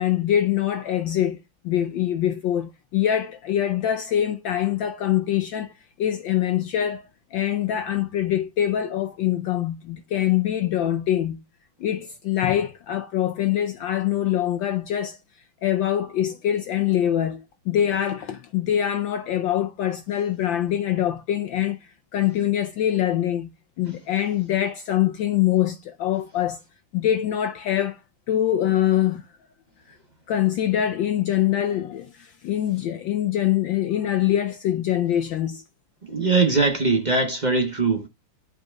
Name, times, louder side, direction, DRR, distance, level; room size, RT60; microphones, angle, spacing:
voice 1, 0.0-1.4 1.6-5.7 6.0-7.1 7.3-11.4 11.8-15.2 15.6-21.8 22.1-23.5 23.8-26.6 26.9-28.0 28.3-29.3 30.3-35.6, left 11 dB, 70° left, 1.3 m, -24 dB
voice 2, 36.1-38.1, right 3 dB, 30° right, 0.8 m, -21 dB
11.5 x 5.0 x 2.3 m
omnidirectional pair, 2.4 m